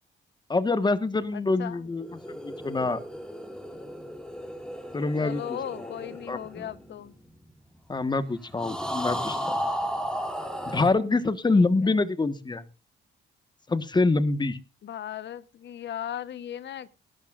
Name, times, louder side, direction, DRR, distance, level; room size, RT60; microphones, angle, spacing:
voice 1, 0.5-3.0 4.9-5.9 6.3-6.6 7.9-9.6 10.6-12.6 13.7-14.6, left 3 dB, 20° left, 13 dB, 1.4 m, -26 dB
voice 2, 1.3-1.9 5.2-7.1 11.5-11.9 14.8-16.9, left 10 dB, 60° left, 15 dB, 1.1 m, -37 dB
sound 1, 1.9-7.5 8.6-10.9, equal, 5° left, 3.3 m, -34 dB
20.0 x 12.0 x 2.5 m, 0.31 s
cardioid pair, 90°, 20 cm